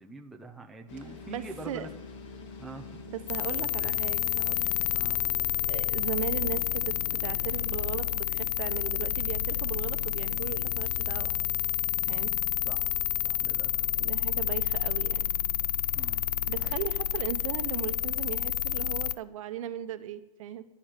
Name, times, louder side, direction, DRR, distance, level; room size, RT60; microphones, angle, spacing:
voice 1, 0.0-1.9 2.6-3.1 3.8-3.9 4.9-5.2 12.6-12.9 13.2-13.9 15.9-16.8, right 2 dB, ahead, 1 dB, 0.5 m, -45 dB
sound 1, 0.9-8.5, left 3 dB, 45° left, 2.3 m, -48 dB
voice 2, 1.3-1.9 3.1-4.7 5.7-11.3 12.0-12.3 13.9-15.3 15.7-16.1 16.4-20.6, right 11 dB, 55° right, 11 dB, 1.0 m, -37 dB
sound 2, 3.3-19.2, left 12 dB, 75° left, 0.4 m, -29 dB
11.5 x 7.4 x 8.9 m, 0.91 s
hypercardioid pair, 155°, 20 cm